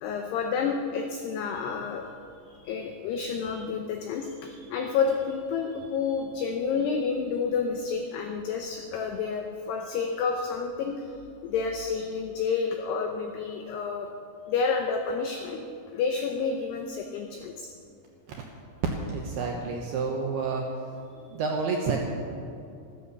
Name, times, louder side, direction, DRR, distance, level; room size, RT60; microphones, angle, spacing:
voice 1, 0.0-2.1 2.5-11.1 11.4-14.1 14.5-17.7, left 5 dB, 85° left, 4 dB, 2.3 m, -30 dB
voice 2, 19.1-20.7 21.1-22.1, right 4 dB, 75° right, 1 dB, 2.4 m, -29 dB
14.0 x 13.0 x 7.0 m, 2.6 s
omnidirectional pair, 5.9 m